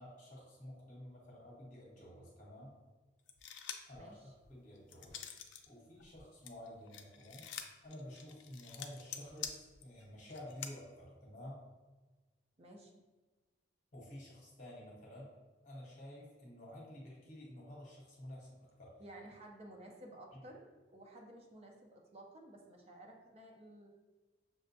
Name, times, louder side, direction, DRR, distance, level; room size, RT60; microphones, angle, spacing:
voice 1, 0.0-2.7 3.9-5.2 5.7-7.5 7.8-11.6 13.9-15.3 15.6-18.9 20.3-20.5, left 1 dB, 45° left, -4 dB, 1.0 m, -51 dB
sound 1, 3.3-4.0 4.4-5.7 6.0-10.7, left 8 dB, 90° left, 0.4 m, -47 dB
voice 2, 3.9-4.3 12.6-13.0 19.0-23.9, right 1 dB, 35° right, 1 dB, 0.5 m, -54 dB
6.2 x 2.1 x 2.6 m, 1.3 s
head